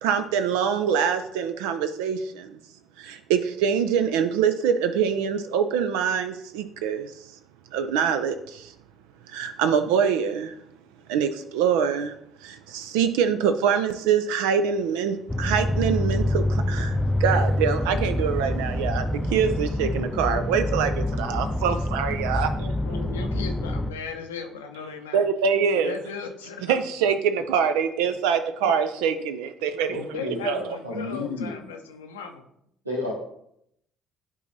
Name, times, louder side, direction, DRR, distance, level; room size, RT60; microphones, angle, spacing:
voice 1, 0.0-2.6 3.0-7.1 7.7-8.7 9.3-10.5 11.1-12.2 12.4-22.5 25.1-26.0 26.7-30.0 30.4-30.8, right 7 dB, 65° right, 9 dB, 0.3 m, -24 dB
sound 1, 15.3-23.9, left 1 dB, 10° left, 0.5 m, -26 dB
voice 2, 22.3-25.2 25.7-26.9 29.1-29.2 30.1-32.5, left 5 dB, 75° left, 4 dB, 0.6 m, -37 dB
voice 3, 29.9-31.6 32.8-33.1, left 2 dB, 90° right, -2 dB, 1.1 m, -32 dB
10.5 x 4.0 x 2.7 m, 0.74 s
figure-of-eight pair, 50°, 0 cm